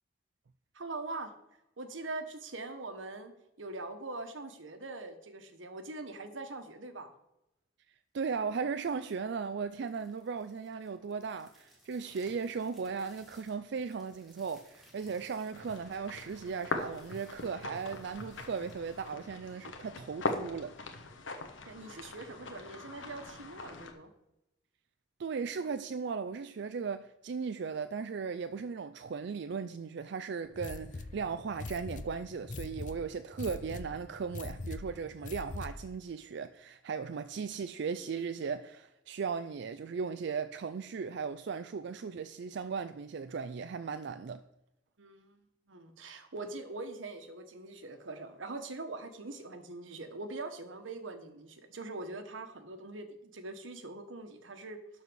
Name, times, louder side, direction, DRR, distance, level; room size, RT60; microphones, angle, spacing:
voice 1, 0.7-1.3 1.8-3.3 3.6-7.1 21.7-24.1 45.0-54.8, right 2 dB, 85° right, 1.2 m, -43 dB
voice 2, 8.1-20.9 25.2-44.4, right 5 dB, 65° right, 0.4 m, -37 dB
sound 1, 9.6-19.9, equal, ahead, 2.4 m, -63 dB
sound 2, 15.5-23.9, left 3 dB, 80° left, 1.3 m, -41 dB
sound 3, 30.5-36.0, left 2 dB, 40° left, 0.6 m, -43 dB
12.0 x 4.2 x 6.2 m
head